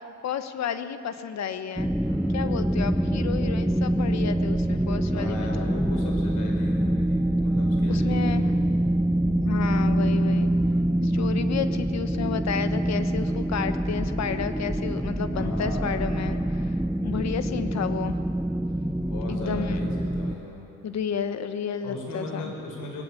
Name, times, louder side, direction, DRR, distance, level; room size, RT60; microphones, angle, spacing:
voice 1, 0.2-1.9 2.3-5.7 7.9-8.4 9.2-10.5 11.0-16.7 17.0-18.1 19.3-19.9 20.8-22.5, left 7 dB, 60° left, 10 dB, 1.3 m, -32 dB
sound 1, 1.8-20.3, right 1 dB, ahead, 0.6 m, -25 dB
voice 2, 2.0-2.4 5.1-8.7 15.3-16.1 19.0-20.6 21.8-23.0, left 2 dB, 85° left, 0 dB, 5.1 m, -38 dB
20.5 x 16.5 x 8.5 m, 2.8 s
cardioid pair, 90°, 30 cm